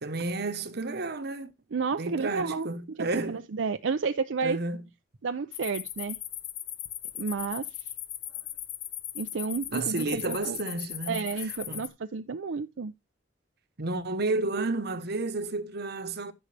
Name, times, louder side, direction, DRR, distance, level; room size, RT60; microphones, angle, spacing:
voice 1, 0.0-1.5 2.0-3.4 4.4-4.8 9.7-11.8 13.8-16.3, right 2 dB, 60° right, 1.1 m, -32 dB
voice 2, 1.7-4.6 5.2-6.2 7.2-7.7 9.1-10.6 11.1-12.9, right 5 dB, 80° right, 0.5 m, -31 dB
sound 1, 5.5-11.9, left 12 dB, 70° left, 1.1 m, -38 dB
14.5 x 6.3 x 3.3 m
head